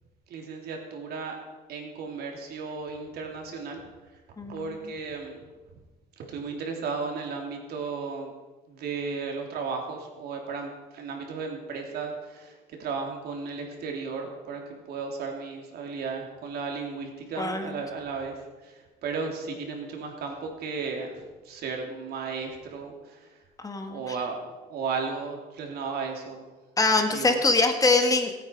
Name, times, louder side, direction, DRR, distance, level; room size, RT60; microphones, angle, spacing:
voice 1, 0.3-1.4 1.7-3.8 4.5-5.4 6.2-8.3 8.7-12.5 12.8-14.6 14.9-18.3 18.6-23.3 23.9-26.4 27.1-27.4, right 4 dB, 70° right, 2 dB, 3.3 m, -34 dB
voice 2, 4.4-4.7 17.4-17.7 23.6-24.0 26.8-28.4, left 3 dB, 20° left, 5 dB, 1.6 m, -23 dB
25.0 x 9.2 x 4.7 m, 1.2 s
cardioid pair, 110°, 17 cm